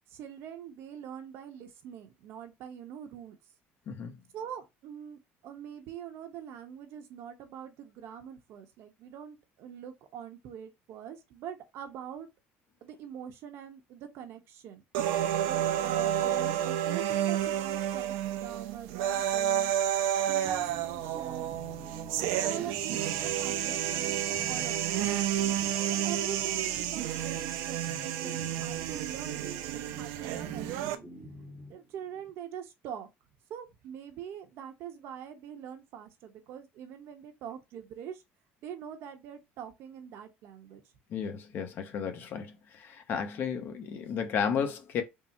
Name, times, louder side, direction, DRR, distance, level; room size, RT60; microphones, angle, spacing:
voice 1, 0.1-3.4 4.3-12.3 12.8-14.8 15.4-19.7 20.3-21.6 22.2-25.1 25.8-31.0 31.7-33.1 33.5-38.2 38.6-40.8, right 9 dB, 60° right, 0.8 m, -44 dB
voice 2, 3.9-4.2 25.0-25.1 41.1-45.0, left 7 dB, 45° left, 0.7 m, -33 dB
sound 1, 14.9-31.0, right 11 dB, 85° right, 0.5 m, -30 dB
sound 2, 20.4-32.3, right 1 dB, 5° right, 0.8 m, -48 dB
3.6 x 2.0 x 4.2 m
cardioid pair, 155°, 5 cm